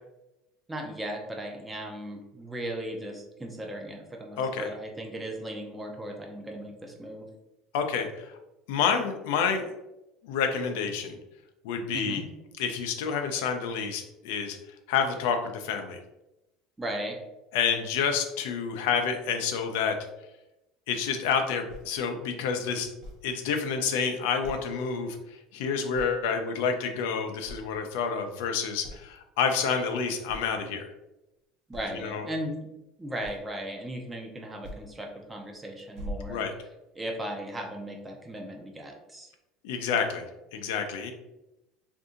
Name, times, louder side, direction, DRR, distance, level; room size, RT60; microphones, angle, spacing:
voice 1, 0.7-7.3 11.9-12.3 16.8-17.2 31.7-32.6 33.0-36.4 37.0-39.3, right 1 dB, 10° right, 2 dB, 0.5 m, -37 dB
voice 2, 4.4-4.7 7.7-8.4 8.7-9.7 10.2-11.2 11.6-12.2 12.6-14.6 14.9-16.0 17.5-20.0 20.9-22.9 23.2-30.9 31.9-32.3 36.3-36.5 39.6-40.2 40.5-41.1, left 6 dB, 85° left, 5 dB, 0.5 m, -29 dB
sound 1, 21.7-21.9 23.0-23.2 24.4-24.8 25.2-25.3 25.9-26.3 26.7-27.1 27.4-27.8 28.4-28.5 28.8-29.1 29.8-29.9 30.3-30.5 31.7-32.0 33.2-33.6 34.6-34.8 35.3-35.5 35.9-36.9, equal, 55° right, 0.8 m, -42 dB
2.6 x 2.6 x 3.6 m, 0.92 s
cardioid pair, 155°, 0 cm